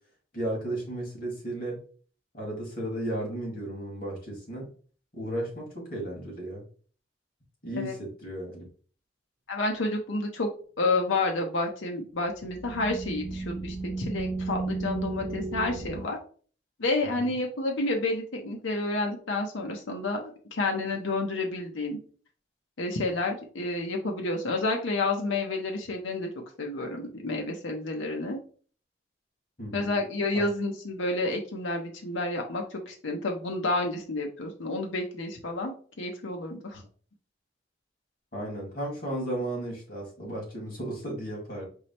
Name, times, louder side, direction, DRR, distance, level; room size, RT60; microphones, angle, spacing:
voice 1, 0.3-1.8 2.3-4.7 5.1-6.6 7.6-8.6 17.2-17.3 29.6-29.9 30.3-30.4 38.3-41.7, right 1 dB, 50° left, -1 dB, 1.8 m, -34 dB
voice 2, 9.5-10.5 10.8-16.2 16.8-22.0 22.8-26.3 26.6-28.4 29.7-36.8, left 2 dB, 85° left, 2 dB, 0.7 m, -30 dB
sound 1, 12.3-16.0, right 3 dB, 35° right, 0.5 m, -34 dB
4.7 x 2.1 x 4.2 m, 0.42 s
head